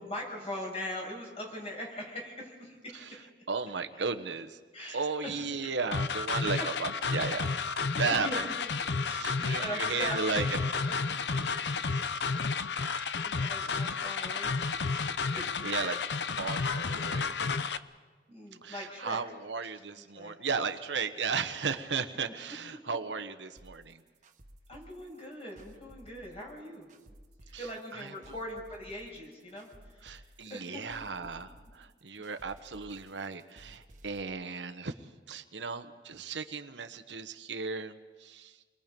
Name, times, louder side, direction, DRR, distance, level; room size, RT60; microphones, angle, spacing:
voice 1, 0.0-3.3 4.7-5.7 7.9-8.5 9.0-10.4 12.9-14.6 15.3-15.8 18.3-19.2 20.0-20.3 24.7-26.9 27.6-30.2 30.5-30.9, left 1 dB, 35° left, -1 dB, 6.4 m, -41 dB
voice 2, 3.5-4.6 4.9-7.5 8.0-8.5 9.1-10.6 11.7-11.8 13.6-13.8 15.6-16.0 16.4-17.6 18.6-24.0 27.5-27.6 27.9-28.1 30.0-34.9 35.3-37.9 38.2-38.5, right 5 dB, 90° right, 8 dB, 1.1 m, -35 dB
sound 1, 5.9-17.8, left 4 dB, 75° left, 0.7 m, -31 dB
sound 2, 23.6-34.2, right 1 dB, 45° right, 1.5 m, -56 dB
28.5 x 22.0 x 5.3 m, 1.4 s
head